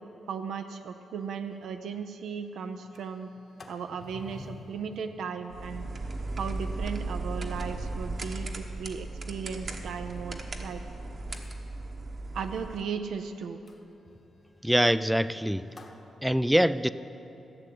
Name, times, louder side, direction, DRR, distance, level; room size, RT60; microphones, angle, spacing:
voice 1, 0.3-3.3 3.7-5.9 6.4-10.8 12.3-13.6, right 6 dB, 80° right, 6 dB, 0.5 m, -36 dB
Sliding door, 1.2-1.3 1.6-1.7 2.1-2.4 2.7-10.7 11.2-11.7 13.7-16.1, left 3 dB, 40° left, 1.2 m, -53 dB
sound 1, 5.5-12.8, right 2 dB, 50° right, 1.1 m, -36 dB
voice 2, 14.6-15.7 16.2-16.9, equal, 5° right, 15 dB, 0.3 m, -24 dB
13.5 x 6.8 x 8.5 m, 2.9 s
cardioid pair, 85°, 0 cm